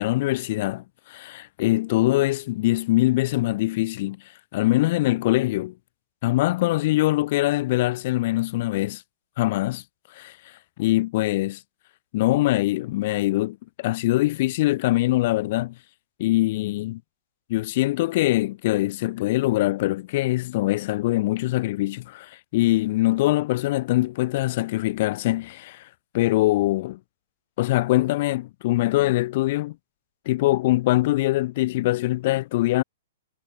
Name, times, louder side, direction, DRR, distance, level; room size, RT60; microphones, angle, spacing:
voice 1, 0.0-4.2 4.5-5.7 6.2-9.0 9.4-9.8 10.1-10.4 10.8-11.6 12.1-15.7 16.2-17.0 17.5-25.9 26.1-27.0 27.6-29.7 30.2-32.8, left 17 dB, 50° left, 3.3 m, -23 dB
hypercardioid pair, 150°, 0 cm